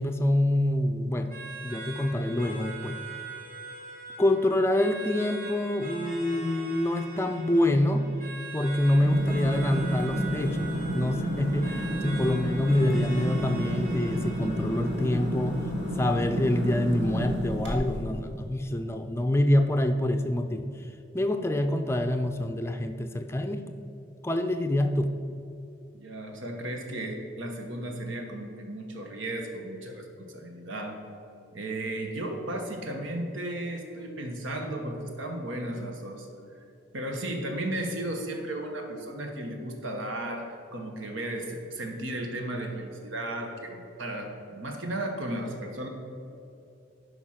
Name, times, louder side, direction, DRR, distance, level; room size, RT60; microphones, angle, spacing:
voice 1, 0.0-1.3 1.6-3.0 4.2-8.1 8.5-15.6 16.0-20.7 21.1-23.6 24.2-25.1, left 1 dB, 15° left, 6 dB, 0.4 m, -26 dB
sound 1, 1.3-16.3, right 3 dB, 45° right, 2.2 m, -43 dB
sound 2, 8.9-18.1, equal, 65° right, 1.8 m, -31 dB
voice 2, 25.9-31.0 31.5-36.3 36.9-45.9, right 1 dB, 80° right, 3 dB, 1.2 m, -35 dB
11.5 x 5.0 x 5.8 m, 2.7 s
head